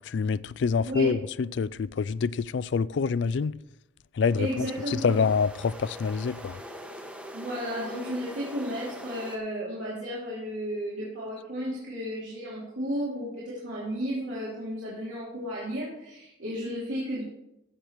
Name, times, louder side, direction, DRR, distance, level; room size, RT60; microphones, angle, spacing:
voice 1, 0.1-3.6 4.2-6.6, left 5 dB, 65° left, 0.3 m, -26 dB
voice 2, 0.9-1.2 4.4-5.2 7.3-17.2, equal, 85° right, 2.8 m, -33 dB
sound 1, 4.2-9.4, equal, 5° right, 0.9 m, -43 dB
15.0 x 6.6 x 4.6 m
head